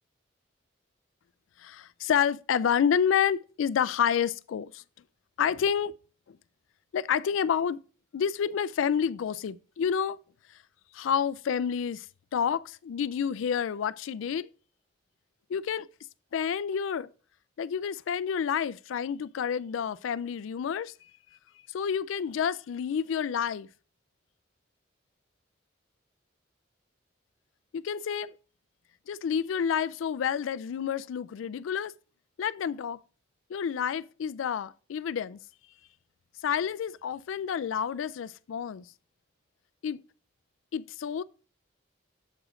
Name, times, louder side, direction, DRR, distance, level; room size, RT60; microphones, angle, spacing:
voice 1, 1.6-4.8 5.4-5.9 6.3-6.4 6.9-7.8 8.1-10.2 10.9-12.1 12.3-14.5 15.5-15.9 16.3-17.1 17.6-20.9 21.7-23.7 27.7-28.3 29.1-31.9 32.4-33.0 33.5-35.4 36.4-38.9 39.8-40.0 40.7-41.2, left 7 dB, 80° left, 0.3 m, -29 dB
7.6 x 4.9 x 3.7 m
head